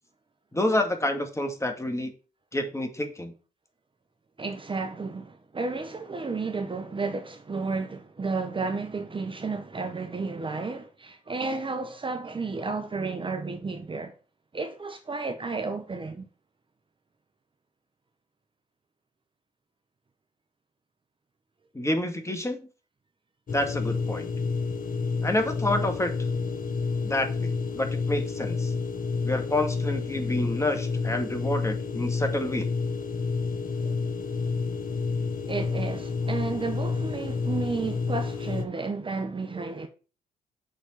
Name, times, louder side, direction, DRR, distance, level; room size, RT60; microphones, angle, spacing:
voice 1, 0.5-2.1 2.5-3.3 21.7-22.6 23.5-24.3 25.2-26.1 27.0-28.7 29.2-32.6, left 1 dB, 15° left, 2.0 m, -28 dB
voice 2, 4.4-14.1 14.5-16.3 33.8-33.9 35.5-39.9, right 4 dB, 25° right, 1.1 m, -32 dB
sound 1, 23.5-38.7, left 4 dB, 45° left, 1.2 m, -29 dB
7.2 x 4.2 x 5.8 m
hypercardioid pair, 45°, 19 cm